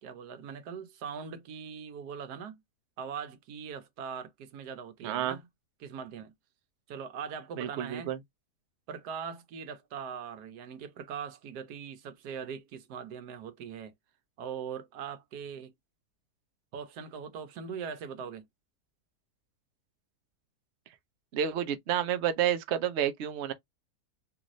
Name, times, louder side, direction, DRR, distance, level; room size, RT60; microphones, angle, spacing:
voice 1, 0.0-2.6 3.0-5.5 5.8-6.3 6.9-8.1 8.9-13.9 14.4-15.7 16.7-18.5, right 7 dB, 80° right, 1.3 m, -41 dB
voice 2, 5.0-5.4 7.6-8.2 21.3-23.5, right 9 dB, 65° right, 0.7 m, -30 dB
3.1 x 2.6 x 3.0 m
omnidirectional pair, 1.7 m